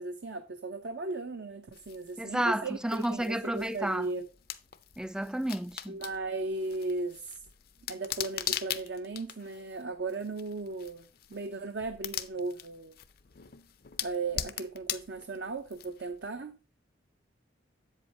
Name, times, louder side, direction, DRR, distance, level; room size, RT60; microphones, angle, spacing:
voice 1, 0.0-4.3 5.9-7.2 7.9-12.9 14.0-16.5, right 3 dB, 65° right, 0.7 m, -36 dB
sound 1, 1.7-16.3, left 10 dB, 55° left, 0.6 m, -41 dB
voice 2, 2.2-4.1 5.0-6.0, right 1 dB, 5° right, 0.3 m, -31 dB
8.1 x 7.5 x 2.8 m
head